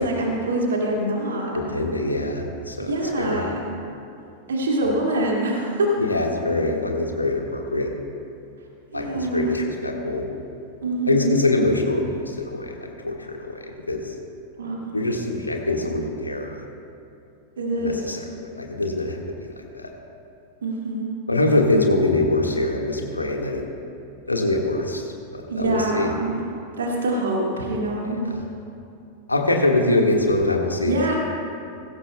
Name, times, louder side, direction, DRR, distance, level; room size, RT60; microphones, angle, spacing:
voice 1, 0.0-1.6 2.8-3.6 4.5-6.0 8.9-9.6 10.8-11.3 14.6-14.9 17.6-18.1 20.6-21.1 25.5-26.4 26.8-28.2 30.8-31.1, right 1 dB, 65° right, -1 dB, 2.1 m, -25 dB
voice 2, 1.5-3.4 6.0-7.9 8.9-10.3 11.1-13.6 13.9-14.1 14.9-16.6 17.8-18.2 18.5-19.9 21.3-23.6 24.3-26.1 29.3-31.1, left 2 dB, 80° left, 1 dB, 1.6 m, -24 dB
20.5 x 16.0 x 2.2 m, 2.7 s
figure-of-eight pair, 90°, 0 cm